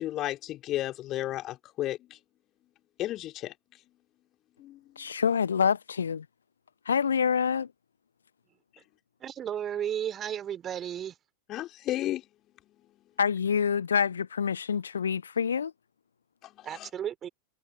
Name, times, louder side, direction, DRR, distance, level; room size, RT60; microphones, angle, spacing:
voice 1, 0.0-2.0 3.0-3.5 4.6-4.8 11.5-12.2 16.6-16.9, left 14 dB, 35° left, 2.9 m, -33 dB
voice 2, 5.0-6.2 6.9-7.7 13.2-15.7, left 6 dB, 70° left, 0.4 m, -26 dB
voice 3, 9.2-11.2 16.6-17.3, right 9 dB, 25° right, 3.5 m, -33 dB
figure-of-eight pair, 90°, 0 cm